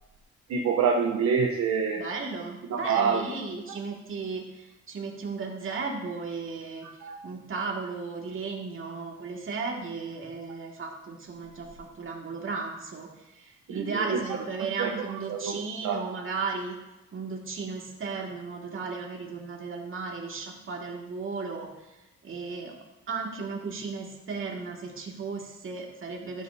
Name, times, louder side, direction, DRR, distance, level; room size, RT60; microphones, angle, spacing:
voice 1, 0.5-2.0 2.7-3.3 6.8-7.2 13.7-14.2 14.6-15.0 15.3-16.1, right 6 dB, 65° right, 1 dB, 0.9 m, -27 dB
voice 2, 2.0-6.9 7.2-16.8 17.1-21.7 22.2-22.7 23.1-26.4, right 4 dB, 45° right, 0 dB, 2.1 m, -35 dB
11.5 x 8.3 x 2.7 m, 1.0 s
cardioid pair, 90°, 30 cm